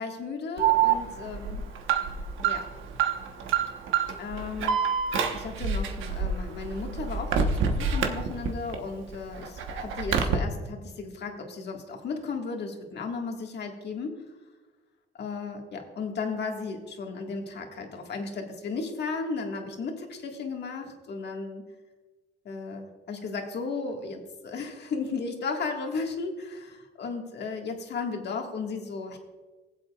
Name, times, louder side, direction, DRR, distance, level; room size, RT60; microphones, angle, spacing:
voice 1, 0.0-1.6 2.4-2.7 4.2-4.8 5.3-14.2 15.2-21.6 22.4-29.2, left 4 dB, 60° left, 2 dB, 1.7 m, -35 dB
Alarm, 0.6-8.7 9.1-10.3, right 7 dB, 80° right, 1.1 m, -27 dB
19.0 x 7.8 x 2.4 m, 1.3 s
cardioid pair, 90°, 20 cm